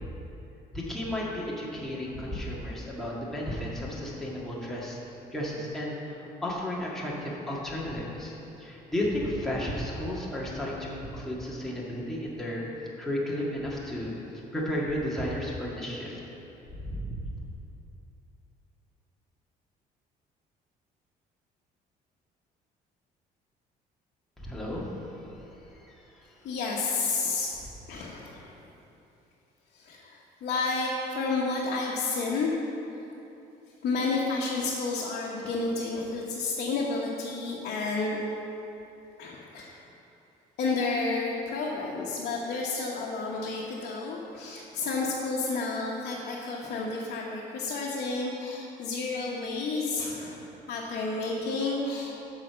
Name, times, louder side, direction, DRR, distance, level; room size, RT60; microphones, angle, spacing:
voice 1, 0.7-5.0 5.3-12.6 13.0-14.2 14.5-16.2 16.8-17.1 24.4-24.9 25.4-25.5 25.7-25.9 26.4-26.5, left 1 dB, ahead, -6 dB, 1.7 m, -33 dB
voice 2, 26.4-27.5 27.9-28.5 29.7-32.6 33.8-38.2 39.2-39.7 40.6-52.2, left 3 dB, 65° left, -5 dB, 1.2 m, -31 dB
8.3 x 5.0 x 6.8 m, 2.9 s
cardioid pair, 110°, 17 cm